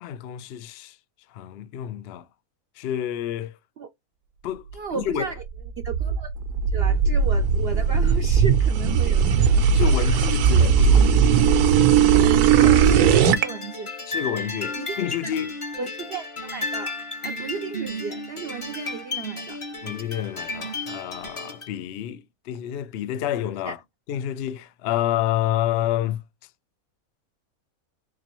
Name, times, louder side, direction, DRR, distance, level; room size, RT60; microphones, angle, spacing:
voice 1, 0.0-1.0 1.3-2.3 2.8-3.6 4.4-4.6 4.9-5.3 9.7-11.6 14.1-15.5 19.8-23.8 24.1-26.2, left 11 dB, 70° left, 0.6 m, -29 dB
voice 2, 4.7-5.4 5.8-6.3 6.7-9.7 9.9-10.6 12.6-13.9 14.8-15.3 15.8-16.9 17.2-19.6 23.6-23.7, right 5 dB, 65° right, 0.6 m, -34 dB
sound 1, 5.4-13.4, right 7 dB, 85° right, 1.1 m, -18 dB
sound 2, 12.9-21.7, left 2 dB, 25° left, 0.7 m, -33 dB
3.9 x 3.0 x 3.0 m
omnidirectional pair, 1.6 m